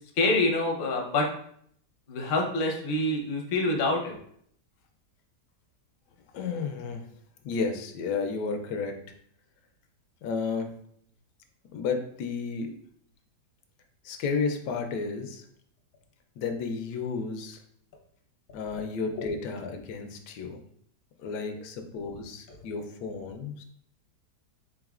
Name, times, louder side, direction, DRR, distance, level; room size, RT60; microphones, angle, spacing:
voice 1, 0.2-1.3 2.1-4.2 19.2-19.3 22.5-22.6, left 2 dB, 55° left, 1 dB, 0.6 m, -26 dB
voice 2, 6.3-7.0 7.4-9.0 10.2-10.7 11.7-12.7 14.0-15.4 16.4-17.6 18.5-20.6 21.2-23.6, left 4 dB, 85° left, 6 dB, 1.2 m, -32 dB
3.9 x 3.5 x 2.4 m, 0.66 s
omnidirectional pair, 1.8 m